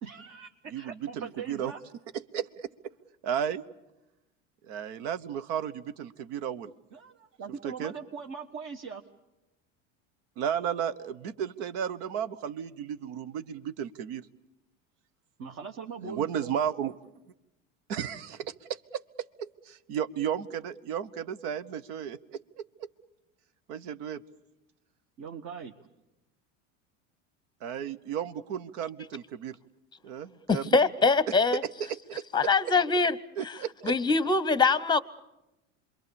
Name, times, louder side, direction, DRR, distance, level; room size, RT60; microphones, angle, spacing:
voice 1, 0.0-1.8 6.9-9.0 15.4-16.5 25.2-25.7, right 6 dB, 45° right, 1.5 m, -41 dB
voice 2, 0.7-1.7 2.1-2.7 3.2-3.6 4.7-6.7 7.6-7.9 10.4-14.3 16.0-17.0 17.9-22.9 23.7-24.2 27.6-29.6 30.0-30.7 31.9-32.5 33.4-33.9, right 8 dB, 70° right, 1.1 m, -34 dB
voice 3, 30.5-31.6 32.3-33.2 33.4-33.6 33.8-35.0, left 4 dB, 10° left, 0.9 m, -23 dB
27.0 x 22.5 x 6.9 m
hypercardioid pair, 85°, 38 cm